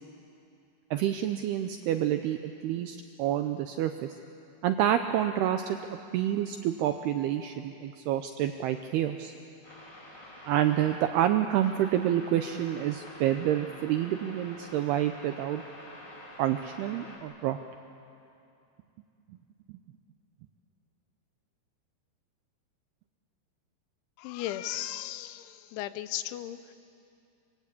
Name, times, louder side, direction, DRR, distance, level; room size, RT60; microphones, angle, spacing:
voice 1, 0.9-2.4 2.6-4.1 4.6-5.8 6.1-9.3 10.5-15.6 16.4-17.6 19.7-19.8, right 11 dB, 80° right, 7 dB, 2.3 m, -28 dB
sound 1, 9.6-11.0 11.6-17.2, left 1 dB, 20° left, 7.0 m, -47 dB
voice 2, 24.2-26.7, left 13 dB, 80° left, 13 dB, 3.1 m, -36 dB
25.5 x 25.0 x 8.4 m, 2.6 s
omnidirectional pair, 5.5 m